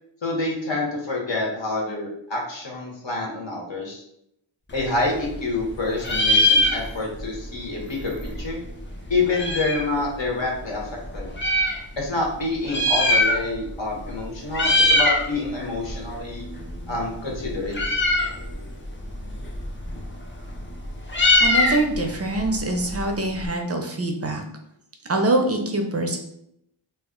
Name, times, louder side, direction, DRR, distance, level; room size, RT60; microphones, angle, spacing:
voice 1, 0.2-4.0 4.7-8.1 8.4-8.6 9.1-10.8 11.1-11.3 12.0-16.4 16.9-17.8, left 2 dB, 60° left, -2 dB, 0.8 m, -27 dB
Meow, 4.7-5.7 6.0-7.3 7.5-7.6 7.8-9.9 10.6-11.8 12.5-13.7 14.0-14.2 14.5-15.3 15.6-23.5, left 1 dB, 25° left, 0.4 m, -22 dB
voice 2, 21.4-24.4 25.1-26.2, right 2 dB, 30° right, 3 dB, 0.4 m, -24 dB
2.1 x 2.0 x 3.6 m, 0.76 s
wide cardioid pair, 55°, 50 cm